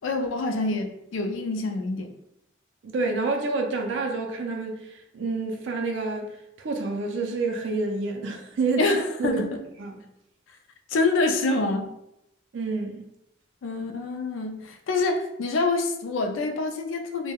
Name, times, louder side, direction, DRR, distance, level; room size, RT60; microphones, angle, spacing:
voice 1, 0.0-2.1 8.8-9.5 10.9-11.9 13.6-17.3, left 3 dB, 80° left, 0.4 m, -26 dB
voice 2, 2.8-9.4 9.8-10.0 12.5-13.0, right 3 dB, 70° right, 0.4 m, -28 dB
3.3 x 2.1 x 2.2 m
head